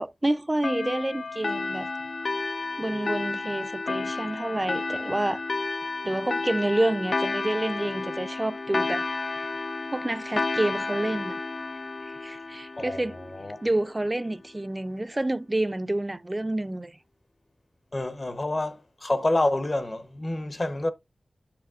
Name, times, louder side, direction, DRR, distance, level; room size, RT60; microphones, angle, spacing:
voice 1, 0.0-1.9 2.8-5.4 6.0-9.1 9.3-9.4 9.9-11.4 12.1-13.2 13.6-17.0, right 1 dB, 20° right, 0.4 m, -28 dB
sound 1, 0.6-13.7, left 3 dB, 60° left, 0.3 m, -31 dB
voice 2, 12.8-13.6 17.9-20.9, left 2 dB, 35° left, 0.8 m, -28 dB
8.7 x 6.1 x 2.4 m
wide cardioid pair, 90°, 0 cm